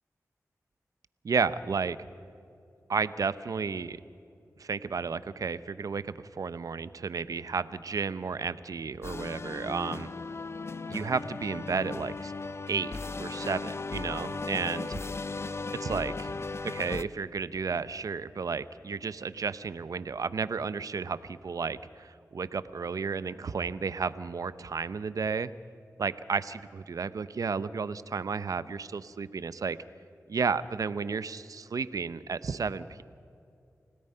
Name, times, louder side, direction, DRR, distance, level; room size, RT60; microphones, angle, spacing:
voice 1, 1.2-2.0 2.9-4.0 4.6-10.1 10.9-12.3 12.7-12.9 13.2-14.9 15.7-16.3 16.6-25.5 26.0-29.8 30.3-33.0, right 5 dB, 75° right, 14 dB, 0.7 m, -32 dB
sound 1, 9.0-17.0, left 3 dB, 45° left, 0.6 m, -37 dB
29.5 x 17.5 x 5.7 m, 2.6 s
cardioid pair, 55°, 6 cm